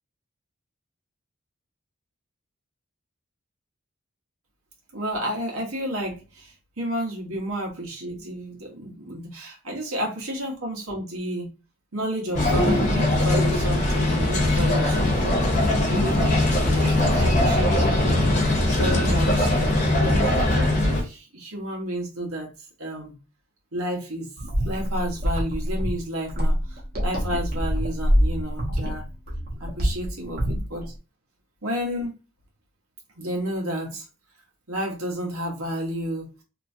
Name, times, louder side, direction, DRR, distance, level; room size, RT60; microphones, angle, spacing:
voice 1, 4.9-11.5 11.9-18.2 18.7-19.6 20.0-22.5 22.8-23.1 23.7-24.3 24.6-29.0 29.6-30.9 31.6-32.1 33.1-34.0 34.7-36.3, equal, 85° right, -1 dB, 1.4 m, -31 dB
sound 1, 12.3-21.0, left 1 dB, 35° left, 0.9 m, -21 dB
sound 2, 24.4-30.9, equal, 45° right, 1.0 m, -25 dB
3.1 x 2.9 x 2.7 m, 0.31 s
head